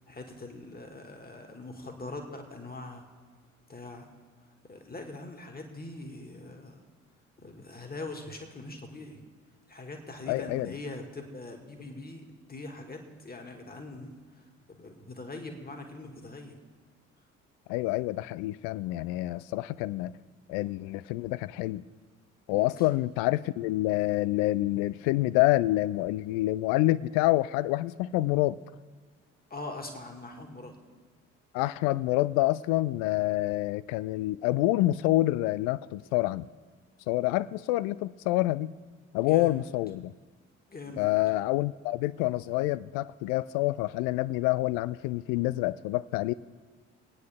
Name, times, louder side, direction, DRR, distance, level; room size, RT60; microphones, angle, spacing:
voice 1, 0.1-3.0 3.7-4.1 4.7-6.8 7.4-9.2 9.7-12.2 12.5-14.2 14.7-16.6 22.5-22.7 24.7-24.8 29.5-30.7 39.3-39.6 40.7-41.0, left 2 dB, 25° left, 4 dB, 2.1 m, -42 dB
voice 2, 10.3-10.7 17.7-20.2 20.5-21.8 22.5-28.6 31.5-36.5 37.1-38.8 39.1-40.1 41.0-46.3, left 17 dB, 60° left, 19 dB, 0.5 m, -27 dB
25.5 x 9.4 x 3.6 m, 1.5 s
figure-of-eight pair, 45°, 38 cm